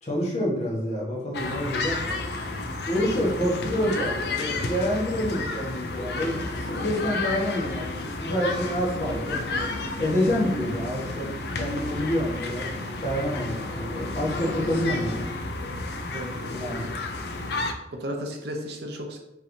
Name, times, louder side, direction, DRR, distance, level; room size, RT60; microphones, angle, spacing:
voice 1, 0.0-2.2 2.9-9.4 10.0-12.7 13.0-15.3 16.5-17.0, equal, 40° left, -4 dB, 1.2 m, -28 dB
sound 1, 1.3-17.7, left 3 dB, 60° left, 0.4 m, -32 dB
sound 2, 3.7-15.5, left 1 dB, 85° left, 1.2 m, -39 dB
voice 2, 16.1-16.7 17.5-19.2, equal, 60° right, 2 dB, 0.7 m, -35 dB
5.4 x 3.2 x 2.6 m, 0.89 s
head